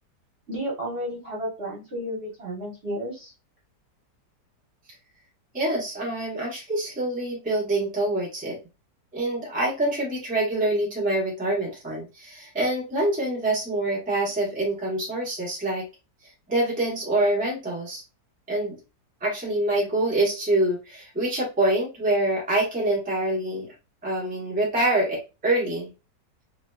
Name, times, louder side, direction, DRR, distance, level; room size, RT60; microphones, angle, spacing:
voice 1, 0.5-3.3, equal, 40° right, -4 dB, 1.2 m, -32 dB
voice 2, 5.5-8.6 9.1-15.8 16.5-18.0 18.5-18.8 19.2-23.7 24.0-25.9, right 1 dB, 5° right, -4 dB, 0.9 m, -25 dB
3.2 x 2.9 x 2.2 m, 0.28 s
omnidirectional pair, 1.8 m